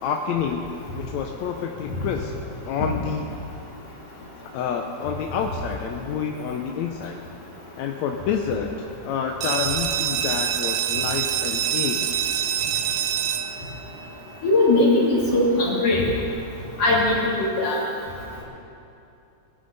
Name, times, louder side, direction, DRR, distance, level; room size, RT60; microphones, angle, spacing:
voice 1, 0.0-0.6 0.9-2.3 2.7-3.3 4.5-7.2 7.8-12.1, left 7 dB, 75° left, 2 dB, 1.8 m, -28 dB
sound 1, 9.4-14.8, right 10 dB, 80° right, 1.5 m, -26 dB
voice 2, 14.4-16.0 16.8-17.8, left 2 dB, 50° left, -6 dB, 3.8 m, -19 dB
20.0 x 11.5 x 4.0 m, 2.8 s
omnidirectional pair, 3.5 m